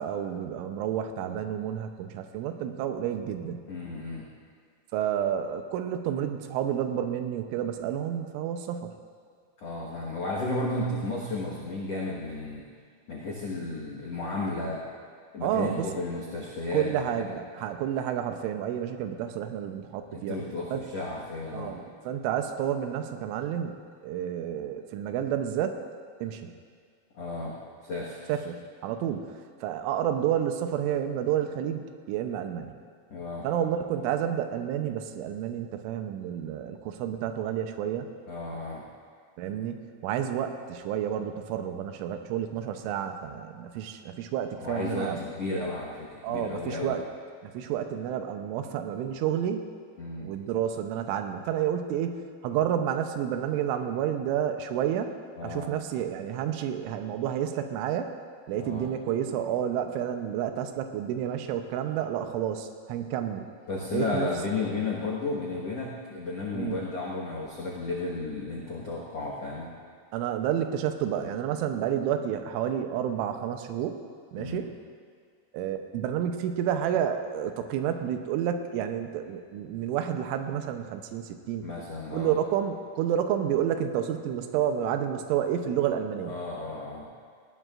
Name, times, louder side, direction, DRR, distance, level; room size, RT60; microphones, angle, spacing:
voice 1, 0.0-3.6 4.9-9.0 15.4-15.9 16.7-20.4 20.7-20.8 21.5-25.8 26.2-26.5 28.3-32.8 33.4-38.1 39.4-45.2 46.2-47.0 47.4-49.7 50.2-55.1 55.4-58.1 58.5-63.5 63.9-64.3 66.5-66.8 70.1-74.0 74.3-74.8 75.5-81.7 82.1-86.3, right 9 dB, 85° right, 6 dB, 3.3 m, -30 dB
voice 2, 3.7-4.2 9.6-12.6 13.1-14.8 15.3-17.4 20.1-21.8 27.1-27.5 27.8-28.2 33.1-33.4 38.3-38.8 44.6-47.0 50.0-50.3 55.4-55.7 58.6-58.9 63.7-69.7 74.4-74.6 81.6-82.3 86.2-87.1, left 2 dB, 85° left, -4 dB, 1.4 m, -33 dB
19.0 x 17.0 x 2.5 m, 2.1 s
omnidirectional pair, 5.5 m